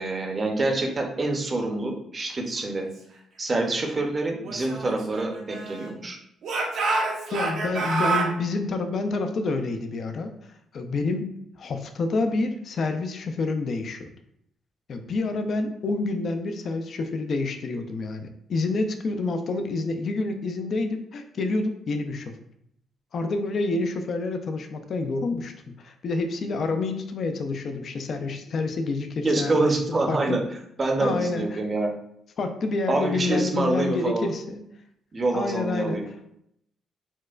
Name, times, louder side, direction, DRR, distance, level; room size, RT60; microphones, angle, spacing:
voice 1, 0.0-2.9 3.4-6.2 29.2-30.4 30.8-31.9 32.9-34.3 35.1-36.1, right 2 dB, 35° right, 2 dB, 0.6 m, -26 dB
Speech / Shout, 4.4-6.0 6.4-8.3, right 3 dB, 75° right, 0.7 m, -28 dB
voice 2, 7.3-14.1 14.9-22.3 23.1-29.6 30.1-30.4 31.0-31.6 32.4-34.6 35.3-36.1, left 3 dB, 55° left, 6 dB, 0.4 m, -28 dB
4.3 x 2.1 x 2.4 m, 0.73 s
cardioid pair, 90°, 0 cm